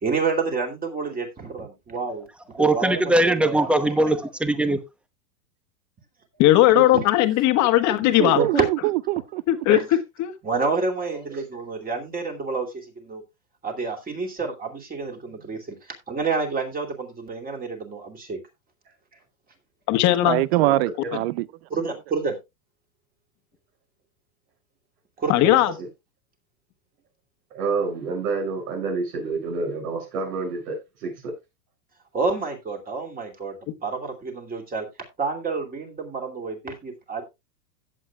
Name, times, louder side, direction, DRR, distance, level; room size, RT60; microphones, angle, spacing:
voice 1, 0.0-3.7 6.7-6.8 8.0-8.6 9.7-9.9 10.4-13.2 13.6-18.4 21.7-22.4 25.2-25.8 32.1-34.9 35.2-37.2, right 4 dB, 20° right, 2.6 m, -29 dB
voice 2, 2.5-4.8, right 1 dB, ahead, 0.8 m, -21 dB
voice 3, 6.4-8.4 9.5-9.8 10.2-10.3 19.9-20.4 25.3-25.7, left 14 dB, 35° left, 1.4 m, -18 dB
voice 4, 8.2-9.4 20.2-21.5, right 17 dB, 40° right, 0.4 m, -23 dB
voice 5, 27.5-31.3, right 4 dB, 70° right, 6.5 m, -28 dB
16.5 x 7.6 x 2.3 m
hypercardioid pair, 125°, 48 cm